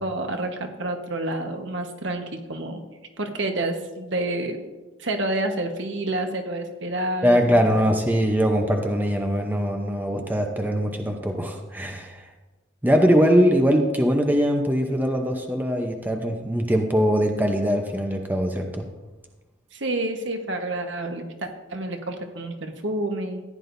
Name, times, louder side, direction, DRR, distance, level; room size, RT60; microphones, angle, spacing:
voice 1, 0.0-2.8 3.2-4.6 5.0-7.9 19.7-23.4, right 2 dB, 70° right, 4 dB, 1.2 m, -29 dB
voice 2, 7.2-12.3 12.8-18.9, equal, 10° right, 3 dB, 0.7 m, -22 dB
15.0 x 9.9 x 2.6 m, 1.2 s
head